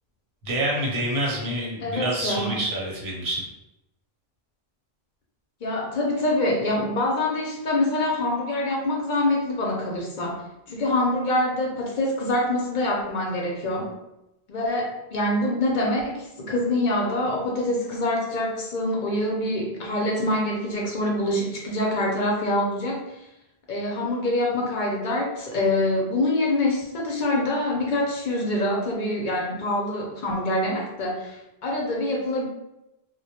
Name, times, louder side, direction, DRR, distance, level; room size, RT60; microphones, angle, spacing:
voice 1, 0.4-3.5, right 1 dB, 90° right, -3 dB, 1.0 m, -27 dB
voice 2, 1.8-2.6 5.6-10.4 10.7-13.9 14.5-23.2 23.7-32.4, left 1 dB, 60° left, -2 dB, 0.6 m, -25 dB
2.2 x 2.1 x 2.7 m, 0.90 s
omnidirectional pair, 1.0 m